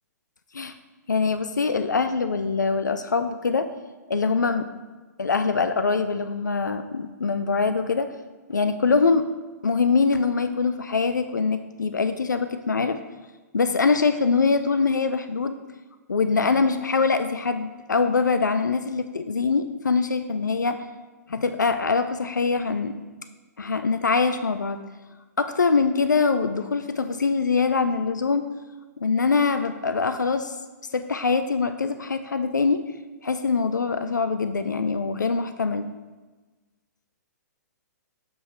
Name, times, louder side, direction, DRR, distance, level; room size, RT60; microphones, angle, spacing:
voice 1, 1.1-3.7 4.1-4.7 5.2-8.1 8.5-9.2 9.6-13.0 13.5-15.6 16.1-20.8 21.3-23.0 23.6-24.8 25.4-28.4 29.0-30.6 30.9-32.8 33.2-35.9, left 4 dB, 85° left, 9 dB, 0.4 m, -23 dB
6.8 x 5.6 x 3.2 m, 1.3 s
figure-of-eight pair, 120°, 10 cm